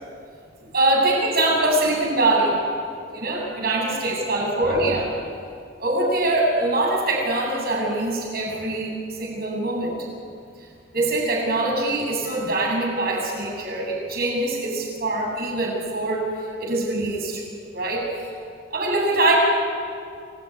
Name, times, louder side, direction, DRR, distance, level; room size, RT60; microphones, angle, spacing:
voice 1, 0.7-2.6 3.1-5.1 5.8-10.0 10.9-16.2 16.6-17.4 17.7-18.0 18.7-19.4, right 2 dB, 55° right, -1 dB, 7.6 m, -23 dB
27.0 x 18.5 x 9.8 m, 2.4 s
head